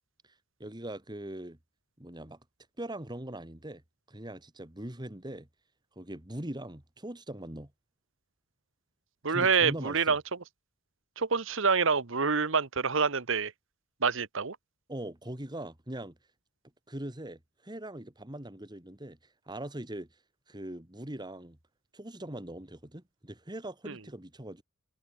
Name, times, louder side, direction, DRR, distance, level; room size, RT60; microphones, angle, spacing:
voice 1, 0.6-1.6 2.0-2.4 2.8-3.8 4.1-5.5 6.0-7.7 9.3-10.2 14.9-16.1 16.9-19.2 19.5-20.1 20.5-21.6 21.9-24.6, right 1 dB, 20° right, 2.2 m, -41 dB
voice 2, 9.2-10.2 11.2-13.5 14.0-14.6 23.9-24.0, right 5 dB, 65° right, 1.3 m, -27 dB
head